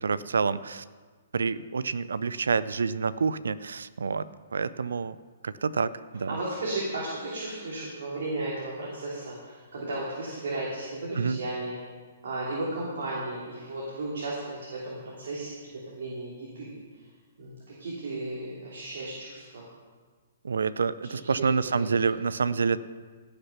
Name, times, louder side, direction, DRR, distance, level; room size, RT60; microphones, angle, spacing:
voice 1, 0.0-0.8 1.3-4.2 4.5-5.2 5.4-6.4 11.2-11.4 20.4-22.8, right 5 dB, 85° right, 17 dB, 0.5 m, -28 dB
voice 2, 6.3-11.8 12.2-16.7 17.4-19.6 21.2-21.9, right 2 dB, 70° right, -5 dB, 3.2 m, -34 dB
17.0 x 6.8 x 5.8 m, 1.5 s
hypercardioid pair, 140°, 0 cm